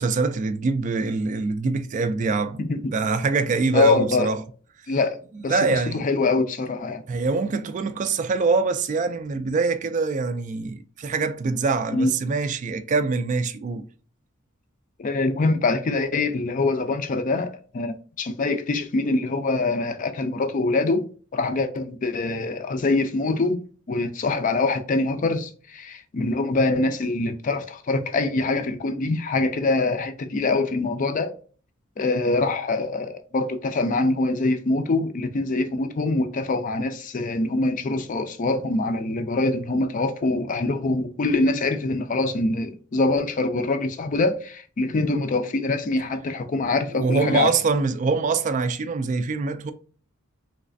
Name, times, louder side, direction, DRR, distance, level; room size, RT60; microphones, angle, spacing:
voice 1, 0.0-2.6 2.9-4.4 5.5-6.1 7.1-13.9 46.9-49.7, right 4 dB, 40° right, 0.3 m, -24 dB
voice 2, 2.6-2.9 3.7-4.3 4.9-5.2 5.4-7.0 11.9-12.1 15.0-21.1 21.3-23.6 23.9-31.3 32.0-47.5, left 3 dB, 40° left, 0.4 m, -24 dB
3.2 x 3.1 x 2.5 m
head